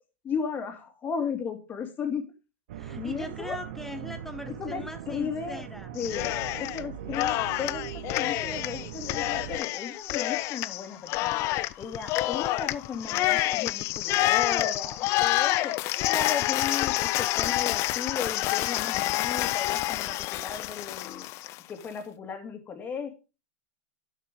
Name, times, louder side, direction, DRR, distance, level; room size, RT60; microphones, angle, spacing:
voice 1, 0.2-2.2 3.0-3.6 4.6-4.8 5.1-5.7 5.9-11.4 11.8-15.7 16.1-21.2 21.7-23.1, left 6 dB, 25° left, 6 dB, 2.2 m, -35 dB
sound 1, 2.7-9.6, right 10 dB, 70° right, 1.0 m, -40 dB
voice 2, 2.8-5.9, left 1 dB, 5° left, 9 dB, 1.0 m, -40 dB
Cheering, 6.0-6.8 7.1-21.6, left 17 dB, 40° left, 0.5 m, -28 dB
12.0 x 6.6 x 3.6 m, 0.30 s
hypercardioid pair, 125°, 7 cm